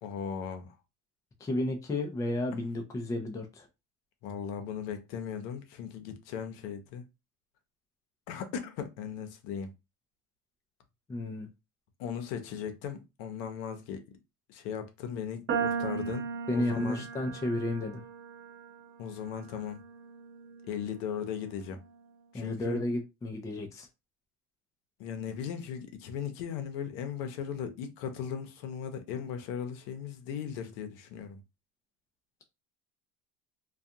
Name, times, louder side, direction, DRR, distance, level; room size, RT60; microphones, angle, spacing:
voice 1, 0.0-0.8 4.2-7.0 8.3-9.7 12.0-14.0 14.5-17.1 19.0-19.8 20.7-21.8 22.3-22.8 25.0-31.4, left 7 dB, 75° left, 0.8 m, -37 dB
voice 2, 1.4-3.7 11.1-11.5 16.5-18.0 22.3-23.9, left 1 dB, 10° left, 0.3 m, -32 dB
sound 1, 15.5-21.8, right 6 dB, 35° right, 0.8 m, -38 dB
2.4 x 2.3 x 2.7 m
supercardioid pair, 125°, 38 cm